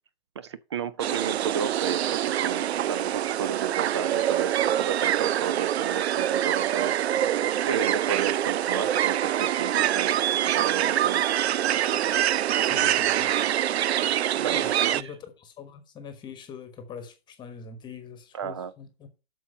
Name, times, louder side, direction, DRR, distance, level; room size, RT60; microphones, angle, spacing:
voice 1, 0.4-4.5 4.8-7.0 7.6-10.2 10.5-11.3 14.4-15.1 18.3-18.7, right 7 dB, 30° right, 0.3 m, -33 dB
sound 1, 1.0-15.0, right 11 dB, 85° right, 0.5 m, -25 dB
voice 2, 12.6-13.3 14.5-19.1, left 6 dB, 15° left, 1.2 m, -43 dB
8.1 x 6.1 x 5.4 m
hypercardioid pair, 150°, 32 cm